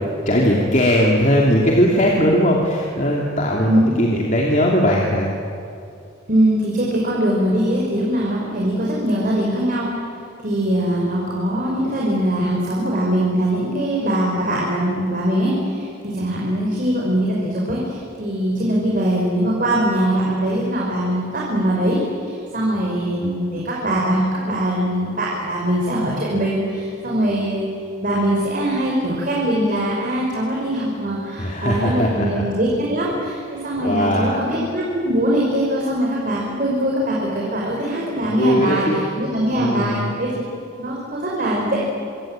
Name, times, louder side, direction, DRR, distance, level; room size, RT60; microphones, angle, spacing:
voice 1, 0.3-5.3 31.4-32.4 33.8-34.4 38.1-39.0 39.6-40.1, equal, 40° left, -1 dB, 2.9 m, -19 dB
voice 2, 6.3-9.9 10.4-22.0 22.2-27.7 28.0-40.3 40.8-41.8, right 1 dB, 40° right, -4 dB, 5.2 m, -22 dB
26.5 x 24.5 x 8.9 m, 2.5 s
head